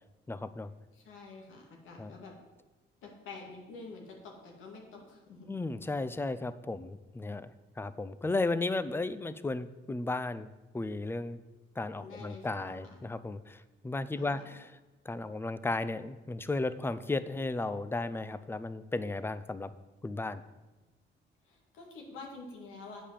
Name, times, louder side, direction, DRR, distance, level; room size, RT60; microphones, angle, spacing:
voice 1, 0.3-0.7 2.0-2.1 5.5-10.5 10.7-11.4 11.8-14.7 15.1-19.7 20.0-20.4, left 2 dB, 10° left, 14 dB, 0.5 m, -34 dB
voice 2, 0.9-2.3 3.0-5.6 12.0-13.0 14.2-14.5 21.4-23.0, left 3 dB, 90° left, 0 dB, 2.2 m, -48 dB
8.5 x 5.1 x 7.4 m, 1.1 s
cardioid pair, 90°, 20 cm